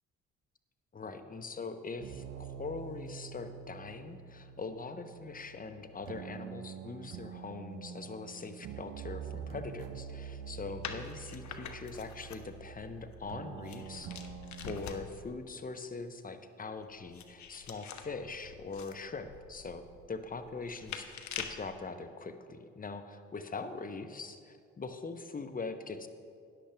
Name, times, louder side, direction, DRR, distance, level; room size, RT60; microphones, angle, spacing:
voice 1, 0.9-14.2 14.7-26.1, left 4 dB, 25° left, 8 dB, 0.9 m, -42 dB
sound 1, 2.0-14.8, right 8 dB, 70° right, 0.8 m, -46 dB
sound 2, 10.8-15.3 16.8-21.7, left 7 dB, 60° left, 1.0 m, -46 dB
13.5 x 10.0 x 3.4 m, 2.3 s
hypercardioid pair, 55°, 32 cm